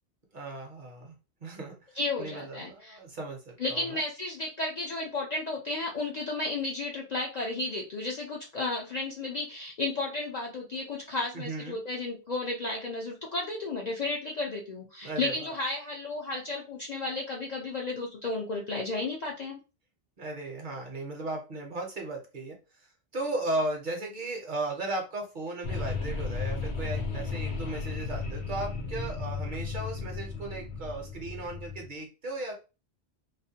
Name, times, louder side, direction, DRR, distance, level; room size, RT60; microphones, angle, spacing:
voice 1, 0.3-1.1 1.4-1.8 2.2-4.0 11.3-11.8 15.0-15.5 20.2-22.9 23.1-32.5, right 2 dB, 55° right, 2 dB, 0.7 m, -36 dB
voice 2, 2.0-3.0 3.6-19.6, left 2 dB, 55° left, -1 dB, 0.5 m, -33 dB
sound 1, 25.6-31.8, left 4 dB, 75° left, 0.9 m, -34 dB
2.4 x 2.1 x 2.7 m, 0.31 s
omnidirectional pair, 1.1 m